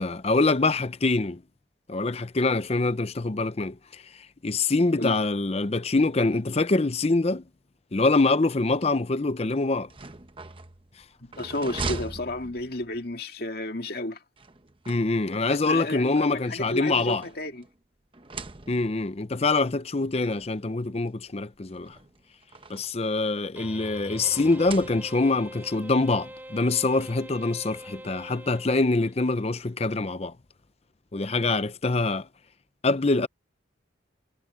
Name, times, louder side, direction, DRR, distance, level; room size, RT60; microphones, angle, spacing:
voice 1, 0.0-1.4 1.9-4.0 4.4-7.4 7.9-9.9 14.9-17.2 18.7-22.0 22.7-30.3 31.1-32.3 32.8-33.3, left 3 dB, 35° left, 0.6 m, -25 dB
sound 1, 9.8-13.1 14.4-15.5 16.4-17.8 18.1-19.1 20.0-20.1 20.4-20.5 21.7-23.1 24.3-25.4, right 3 dB, 30° right, 0.9 m, -40 dB
voice 2, 11.2-14.2 15.5-17.6, left 1 dB, 55° left, 2.3 m, -32 dB
sound 2, 23.6-29.4, right 1 dB, 10° right, 4.6 m, -44 dB
head